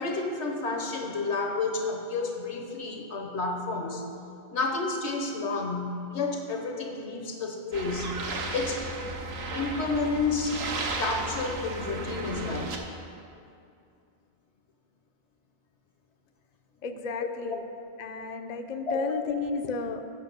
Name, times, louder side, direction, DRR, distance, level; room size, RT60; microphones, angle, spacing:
voice 1, 0.0-4.1 4.5-8.2 8.5-8.8 9.5-10.6 11.0-12.8 17.2-17.6 18.9-19.1, left 3 dB, 85° left, 3 dB, 1.3 m, -30 dB
sound 1, 7.7-12.8, right 2 dB, 70° right, 1.1 m, -34 dB
voice 2, 16.8-17.6 18.0-20.0, left 4 dB, 50° left, 6 dB, 0.5 m, -33 dB
8.3 x 5.9 x 6.6 m, 2.5 s
omnidirectional pair, 1.1 m